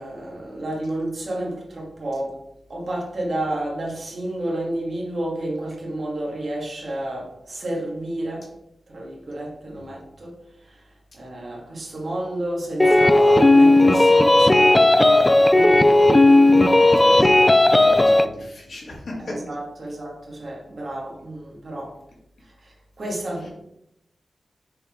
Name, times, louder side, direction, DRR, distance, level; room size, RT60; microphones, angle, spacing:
voice 1, 0.0-2.4 2.7-8.5 8.9-16.0 16.5-17.1 19.3-22.0 22.4-23.5, right 1 dB, 50° right, -3 dB, 1.9 m, -31 dB
sound 1, 12.8-18.3, left 2 dB, 15° left, 0.3 m, -14 dB
voice 2, 17.0-17.4 17.8-19.3 23.4-23.5, left 1 dB, 65° left, -4 dB, 2.2 m, -35 dB
6.6 x 4.0 x 3.7 m, 0.82 s
wide cardioid pair, 130°, 0 cm